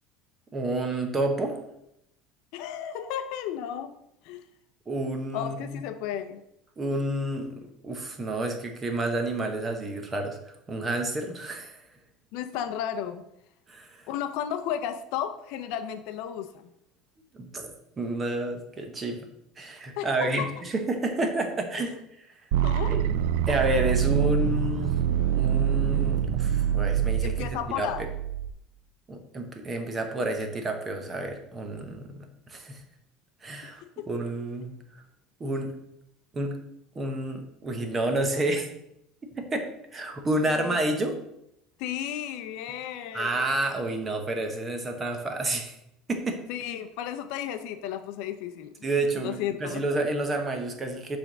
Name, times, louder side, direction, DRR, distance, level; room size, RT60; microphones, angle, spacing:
voice 1, 0.5-1.6 4.9-5.8 6.8-11.8 13.7-14.1 17.3-17.7 18.0-19.3 19.6-22.0 22.9-23.0 23.5-25.0 25.4-27.9 29.1-32.8 33.4-34.7 35.4-35.8 36.3-36.6 36.9-38.7 39.2-41.2 43.1-45.8 46.1-46.4 48.8-51.2, right 2 dB, 15° right, 5 dB, 0.8 m, -30 dB
voice 2, 2.5-3.9 4.2-4.4 5.3-6.4 12.3-13.2 14.1-16.6 20.0-20.5 21.8-21.9 22.6-23.0 27.2-28.0 40.4-40.7 41.8-43.3 46.5-48.7 49.2-49.8, left 10 dB, 60° left, 10 dB, 0.5 m, -33 dB
sound 1, 22.5-28.5, right 9 dB, 80° right, 0.4 m, -25 dB
6.3 x 3.4 x 6.0 m, 0.80 s
cardioid pair, 170°, 0 cm